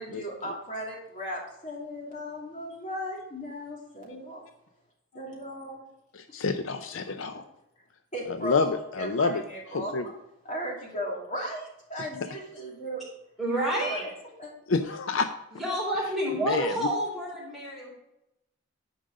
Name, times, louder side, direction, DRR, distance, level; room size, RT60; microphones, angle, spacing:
voice 1, 0.0-4.4 5.1-5.8 8.1-10.1 10.4-13.0 13.5-14.1 14.4-14.5, equal, 35° left, -2 dB, 2.7 m, -36 dB
voice 2, 6.1-7.4 8.4-9.4 9.7-10.0 12.0-12.1 14.7-15.3 16.4-16.8, left 4 dB, 65° left, 9 dB, 0.5 m, -28 dB
voice 3, 13.4-14.0 15.5-17.9, right 1 dB, ahead, -7 dB, 3.6 m, -29 dB
10.0 x 5.1 x 5.2 m, 0.87 s
head